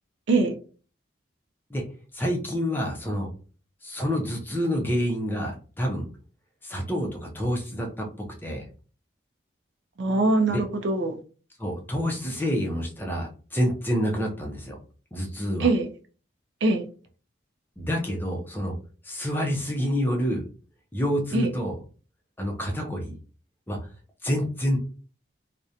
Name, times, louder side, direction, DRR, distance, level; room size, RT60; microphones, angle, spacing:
voice 1, 2.1-3.3 3.8-6.1 6.6-8.1 8.4-8.6 10.5-10.6 11.6-14.8 15.1-15.7 17.8-18.8 19.0-20.4 20.9-21.7 22.4-23.1 23.7-23.8 24.2-24.8, equal, 10° left, 1 dB, 0.4 m, -28 dB
voice 2, 10.0-11.2 15.6-15.9 16.6-16.9 21.3-21.5, right 2 dB, 75° right, 7 dB, 0.4 m, -22 dB
2.4 x 2.1 x 2.7 m, 0.38 s
head